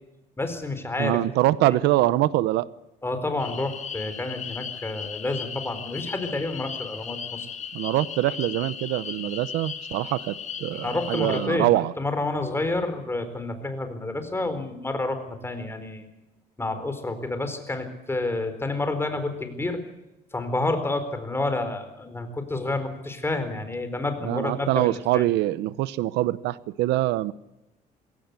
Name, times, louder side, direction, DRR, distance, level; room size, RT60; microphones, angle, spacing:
voice 1, 0.4-1.2 1.6-1.8 3.0-7.5 10.7-16.1 16.6-19.8 20.3-25.2, left 2 dB, 15° left, 4.2 m, -29 dB
voice 2, 1.0-2.7 7.7-11.9 24.2-27.3, right 16 dB, 85° right, 0.8 m, -24 dB
sound 1, 3.4-11.5, left 7 dB, 45° left, 2.1 m, -37 dB
21.5 x 17.0 x 8.3 m
cardioid pair, 110°, 17 cm